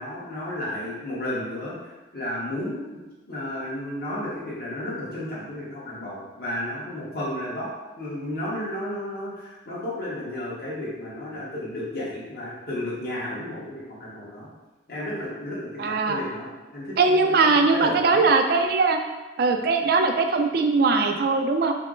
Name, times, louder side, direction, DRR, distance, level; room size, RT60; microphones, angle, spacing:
voice 1, 0.0-2.8 3.3-7.7 8.0-14.5 14.9-16.5 16.7-18.2, left 1 dB, 55° left, -7 dB, 1.2 m, -33 dB
voice 2, 15.8-16.2 17.0-19.0 19.4-21.8, right 4 dB, 55° right, 5 dB, 0.3 m, -20 dB
4.3 x 2.0 x 3.8 m, 1.1 s
head